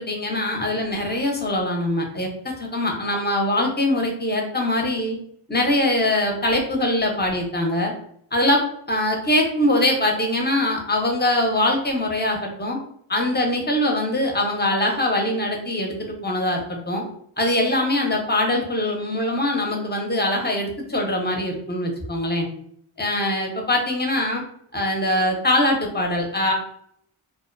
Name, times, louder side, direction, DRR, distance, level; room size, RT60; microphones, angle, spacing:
voice 1, 0.0-5.2 5.5-7.9 8.3-8.6 8.9-12.8 13.1-17.0 17.4-22.5 23.0-24.4 24.7-26.5, left 1 dB, 20° left, 1 dB, 0.6 m, -22 dB
2.5 x 2.1 x 2.4 m, 0.66 s
cardioid pair, 40°, 49 cm